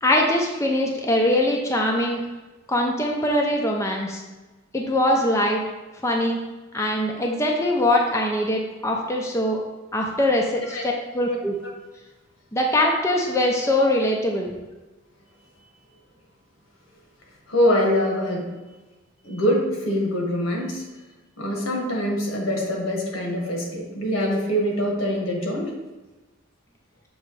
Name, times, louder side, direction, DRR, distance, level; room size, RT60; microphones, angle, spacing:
voice 1, 0.0-2.2 2.7-4.2 4.7-5.6 6.0-6.4 6.7-9.6 9.9-11.6 12.5-14.6, left 1 dB, 15° left, 0 dB, 0.5 m, -22 dB
voice 2, 17.5-18.5 19.2-20.8 21.4-25.7, equal, 85° left, -1 dB, 1.5 m, -24 dB
6.7 x 3.1 x 4.7 m, 1.2 s
head